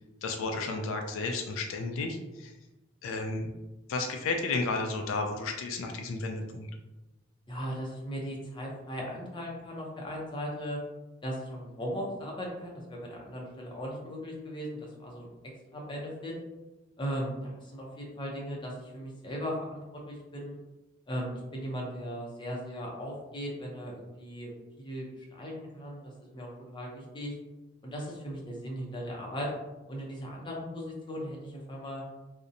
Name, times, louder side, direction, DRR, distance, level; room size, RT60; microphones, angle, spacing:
voice 1, 0.2-2.5 3.0-3.5 3.9-6.7, left 3 dB, 80° left, 4 dB, 0.3 m, -32 dB
voice 2, 7.5-10.8 11.2-15.3 15.7-16.3 17.0-20.5 21.1-27.3 27.8-29.5 29.9-32.0, equal, 25° left, -2 dB, 0.5 m, -38 dB
2.6 x 2.0 x 2.5 m, 1.1 s
head